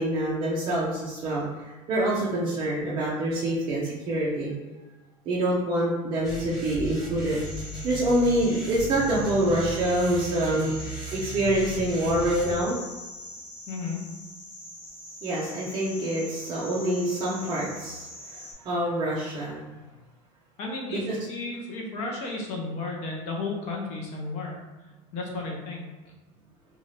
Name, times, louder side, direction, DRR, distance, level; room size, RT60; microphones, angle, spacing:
voice 1, 0.0-4.5 5.3-7.4 7.8-10.8 11.1-12.8 15.2-19.6 20.9-21.2, right 1 dB, 30° right, -7 dB, 0.5 m, -26 dB
sound 1, 6.2-12.5, right 2 dB, ahead, 1.0 m, -37 dB
sound 2, 7.4-18.5, equal, 75° left, 1.0 m, -43 dB
voice 2, 13.7-14.0 20.6-24.6 25.1-25.9, left 3 dB, 40° left, -1 dB, 0.6 m, -33 dB
2.6 x 2.3 x 3.1 m, 1.1 s
cardioid pair, 165°, 17 cm